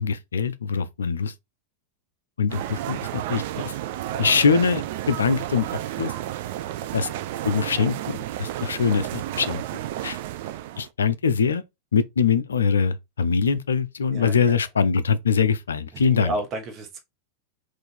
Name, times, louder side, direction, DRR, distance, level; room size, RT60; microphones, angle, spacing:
voice 1, 0.0-1.3 2.4-3.7 4.2-5.7 6.0-6.1 6.9-7.1 7.4-10.2 10.8-11.6 11.9-16.3, left 6 dB, 70° left, 0.4 m, -23 dB
sound 1, 2.5-10.9, right 13 dB, 50° right, 0.4 m, -32 dB
voice 2, 6.7-7.0 14.1-14.6 15.9-17.0, right 2 dB, 30° right, 1.0 m, -33 dB
3.8 x 2.5 x 4.3 m
figure-of-eight pair, 90°, 0 cm